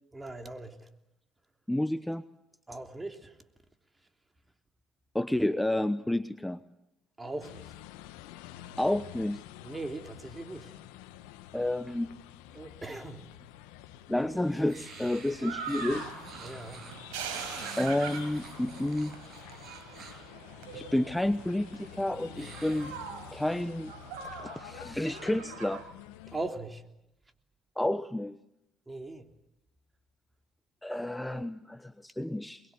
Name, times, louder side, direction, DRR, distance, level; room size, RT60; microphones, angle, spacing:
voice 1, 0.1-0.9 2.7-3.3 7.2-7.7 9.6-10.7 12.5-13.3 16.4-16.8 26.3-26.8 28.9-29.3, right 2 dB, 20° right, 3.2 m, -39 dB
voice 2, 1.7-2.2 5.1-6.6 8.8-9.4 11.5-12.1 14.1-16.1 17.8-19.1 20.7-22.9 23.3-23.9 24.4-25.8 27.8-28.4 30.8-32.6, left 1 dB, 10° left, 1.1 m, -30 dB
sound 1, 7.4-26.5, left 13 dB, 85° left, 1.2 m, -49 dB
sound 2, 14.7-20.3 22.3-23.5, right 4 dB, 55° right, 6.9 m, -48 dB
sound 3, 15.4-25.8, right 6 dB, 85° right, 5.5 m, -43 dB
23.0 x 22.0 x 9.5 m
hypercardioid pair, 60°, 0 cm